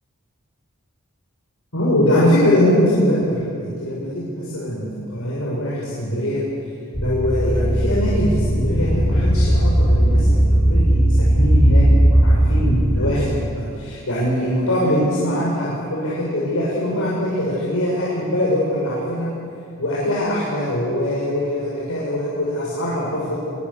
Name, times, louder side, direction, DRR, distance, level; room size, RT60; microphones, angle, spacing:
voice 1, 1.7-6.4 7.0-19.3 19.8-23.3, equal, 80° left, -6 dB, 6.3 m, -22 dB
sound 1, 6.9-13.1, right 1 dB, 40° left, 4.1 m, -17 dB
26.0 x 23.0 x 7.2 m, 2.4 s
head